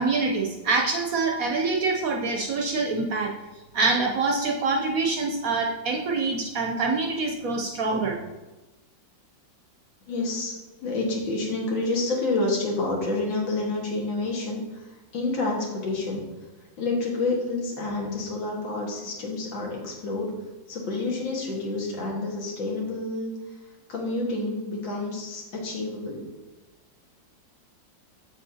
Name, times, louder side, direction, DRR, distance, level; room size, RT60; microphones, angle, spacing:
voice 1, 0.0-3.3 3.7-8.2, right 3 dB, 65° right, 2 dB, 0.9 m, -25 dB
voice 2, 10.1-10.5 10.8-16.2 16.8-20.3 20.7-23.3 23.9-26.3, left 2 dB, 90° left, -3 dB, 2.4 m, -29 dB
7.4 x 7.2 x 2.8 m, 1.1 s
omnidirectional pair, 2.0 m